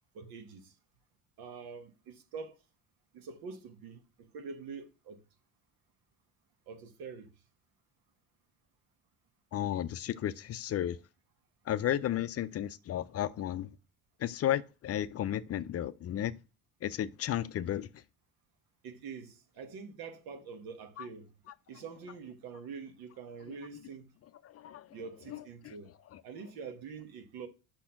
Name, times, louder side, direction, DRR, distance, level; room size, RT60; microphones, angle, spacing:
voice 1, 0.1-0.8 1.4-2.6 3.1-5.2 6.7-7.3 18.8-21.3 21.7-24.1 24.9-25.9 26.2-27.5, right 5 dB, 80° right, 1.4 m, -45 dB
voice 2, 9.5-11.0 11.7-13.7 14.2-16.3 16.8-17.9 24.5-24.9 25.3-25.4 25.6-25.7 26.1-26.2, left 11 dB, 45° left, 0.5 m, -33 dB
6.1 x 4.3 x 5.7 m
cardioid pair, 125°, 36 cm